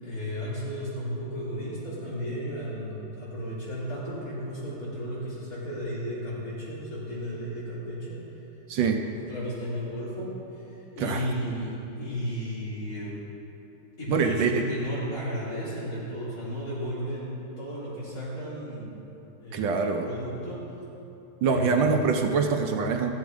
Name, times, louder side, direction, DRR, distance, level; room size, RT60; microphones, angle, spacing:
voice 1, 0.0-8.2 9.3-10.3 10.9-13.2 14.0-19.0 19.4-20.6 21.4-22.1, equal, 45° left, -9 dB, 3.6 m, -34 dB
voice 2, 8.7-9.0 11.0-11.3 14.1-14.6 19.5-20.1 21.4-23.1, right 5 dB, 75° right, 4 dB, 1.3 m, -24 dB
14.0 x 8.2 x 4.7 m, 2.9 s
omnidirectional pair, 2.1 m